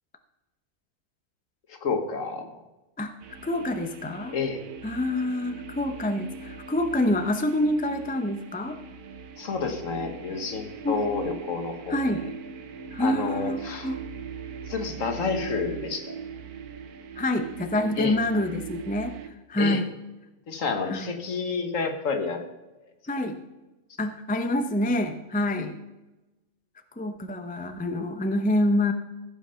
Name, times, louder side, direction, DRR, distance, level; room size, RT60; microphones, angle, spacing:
voice 1, 1.7-2.5 4.3-4.6 9.4-12.0 13.0-13.9 14.6-16.1 18.0-18.2 19.6-19.8 20.5-22.5, left 4 dB, 60° left, 6 dB, 1.6 m, -29 dB
sound 1, 3.2-19.3, right 6 dB, 80° right, 1.4 m, -40 dB
voice 2, 3.4-4.4 4.8-8.8 10.8-11.4 11.9-12.2 12.9-14.0 17.2-19.2 19.5-19.9 20.9-21.1 23.1-23.4 24.0-25.8 27.0-28.9, left 1 dB, 10° left, 8 dB, 0.4 m, -27 dB
15.0 x 5.7 x 5.7 m, 1.0 s
omnidirectional pair, 1.6 m